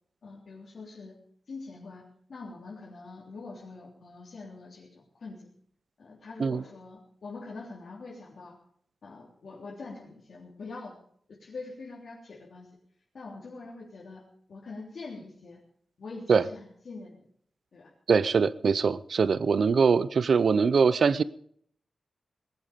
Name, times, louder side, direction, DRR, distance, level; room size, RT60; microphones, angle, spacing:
voice 1, 0.2-1.1 1.5-2.0 2.3-5.5 6.0-8.6 9.0-11.0 11.4-12.7 13.1-14.2 14.5-15.6 16.0-17.2 17.7-17.9 19.5-19.7, left 3 dB, 60° left, -5 dB, 3.4 m, -44 dB
voice 2, 18.1-21.2, right 5 dB, 60° right, 17 dB, 0.7 m, -23 dB
20.0 x 11.5 x 5.1 m, 0.63 s
wide cardioid pair, 165°, 0 cm